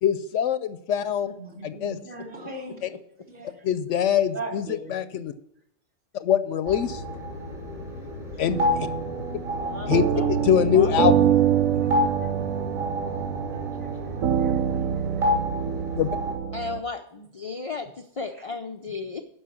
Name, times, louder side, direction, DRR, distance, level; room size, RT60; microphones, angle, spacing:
voice 1, 0.0-1.3 1.6-2.0 3.6-4.6 4.9-5.3 6.1-7.0 8.4-8.9 9.9-11.3 16.0-16.1, left 9 dB, 75° left, 0.9 m, -23 dB
voice 2, 1.3-2.8 3.3-3.7 4.3-4.9 8.3-8.4 11.7-12.3 13.5-15.3 18.3-18.4, right 2 dB, 40° right, 3.4 m, -41 dB
sound 1, 6.7-16.3, left 2 dB, 25° right, 2.7 m, -31 dB
Flash piano ambient, 8.5-16.8, right 9 dB, 85° right, 1.1 m, -25 dB
voice 3, 9.6-10.3 10.7-10.9 16.5-19.2, left 4 dB, 50° left, 0.4 m, -35 dB
11.0 x 5.4 x 7.0 m
omnidirectional pair, 1.3 m